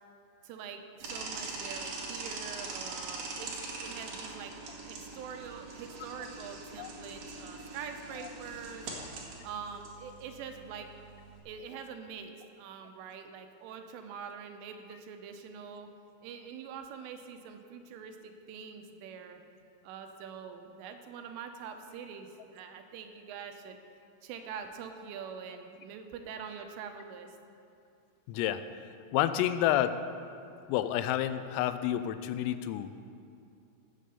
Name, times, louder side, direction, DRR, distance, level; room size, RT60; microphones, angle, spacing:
voice 1, 0.4-4.5 4.9-8.9 9.4-10.9 11.5-15.9 16.2-19.4 19.8-23.8 24.2-27.3, right 6 dB, 80° right, 5 dB, 3.2 m, -44 dB
sound 1, 1.0-11.4, right 3 dB, 60° right, 2.6 m, -42 dB
voice 2, 28.3-28.6 29.1-30.0 30.7-32.9, left 12 dB, 90° left, 11 dB, 3.3 m, -29 dB
16.0 x 6.6 x 6.9 m, 2.5 s
omnidirectional pair, 5.9 m